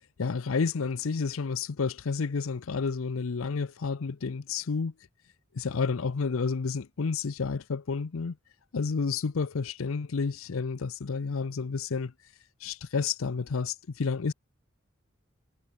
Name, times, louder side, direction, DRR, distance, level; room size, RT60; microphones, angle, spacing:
voice 1, 0.2-4.9 5.6-8.3 8.7-12.1 12.6-14.3, left 5 dB, 90° left, 0.6 m, -30 dB
head